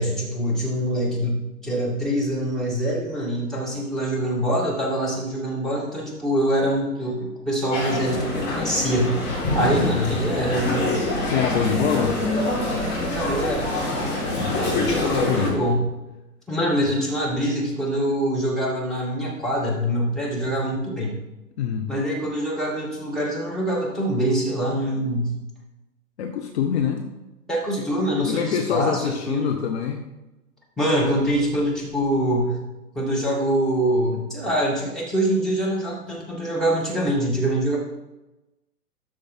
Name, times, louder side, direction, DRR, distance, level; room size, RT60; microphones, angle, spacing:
voice 1, 0.0-9.2 9.5-11.0 13.1-13.7 14.9-15.9 16.5-21.2 21.9-25.4 27.5-29.6 30.8-32.6 32.9-37.8, right 1 dB, ahead, -5 dB, 2.2 m, -24 dB
sound 1, 7.7-15.5, left 1 dB, 20° left, 3.2 m, -25 dB
voice 2, 9.6-9.9 11.2-12.2 14.4-15.6 16.8-16.9 21.6-21.9 26.2-27.0 27.8-27.9 28.2-30.0, left 8 dB, 45° left, 4 dB, 1.0 m, -25 dB
12.5 x 4.9 x 4.4 m, 1.0 s
figure-of-eight pair, 110°, 47 cm